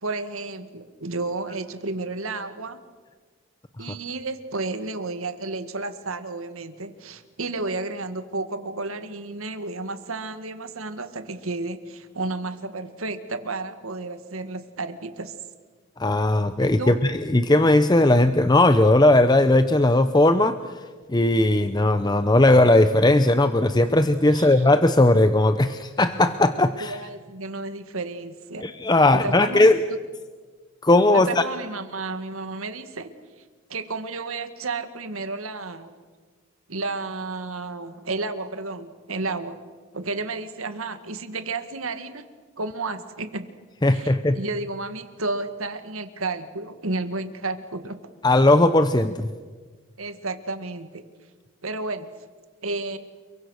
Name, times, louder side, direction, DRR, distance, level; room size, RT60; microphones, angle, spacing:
voice 1, 0.0-2.8 3.8-15.4 16.6-17.0 24.3-24.6 26.5-28.7 29.1-30.0 31.1-33.1 33.7-35.9 36.7-39.7 39.9-42.2 42.6-43.5 43.9-48.0 50.0-51.1 51.6-52.1 52.6-53.0, right 3 dB, 85° right, 9 dB, 2.0 m, -32 dB
voice 2, 16.0-20.6 21.1-27.0 28.6-29.8 30.8-31.4 43.8-44.4 48.2-49.3, left 2 dB, 20° left, 10 dB, 0.7 m, -18 dB
29.5 x 23.0 x 6.5 m, 1.5 s
head